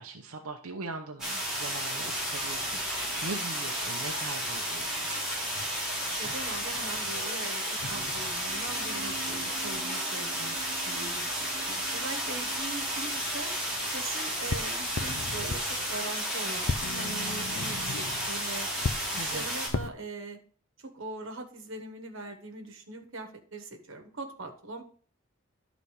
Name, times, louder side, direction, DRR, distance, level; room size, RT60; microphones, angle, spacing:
voice 1, 0.0-5.0 19.2-19.5, right 3 dB, 90° right, 2 dB, 0.8 m, -41 dB
sound 1, 1.2-19.7, equal, ahead, 3.6 m, -32 dB
sound 2, 1.4-3.3 3.8-7.3 7.8-9.8 10.3-16.1 16.5-19.9, left 3 dB, 60° left, 0.6 m, -41 dB
sound 3, 4.8-5.3 7.1-8.1 8.5-12.6, right 6 dB, 25° right, 2.7 m, -48 dB
voice 2, 6.2-11.4 11.7-13.5 13.9-15.6 15.9-18.7 19.1-20.4 20.8-24.8, right 2 dB, 65° right, 5 dB, 1.4 m, -41 dB
11.5 x 4.1 x 4.7 m, 0.44 s
head